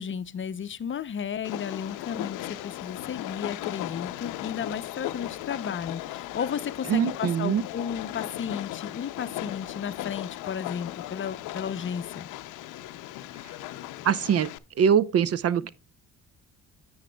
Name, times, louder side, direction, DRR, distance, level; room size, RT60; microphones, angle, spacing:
voice 1, 0.0-12.3, left 7 dB, 40° left, 0.6 m, -34 dB
Train, 1.4-14.6, left 15 dB, 90° left, 0.5 m, -37 dB
voice 2, 6.9-7.6 14.0-14.5 14.8-15.7, right 8 dB, 55° right, 0.6 m, -23 dB
9.9 x 8.7 x 2.2 m
cardioid pair, 90°, 30 cm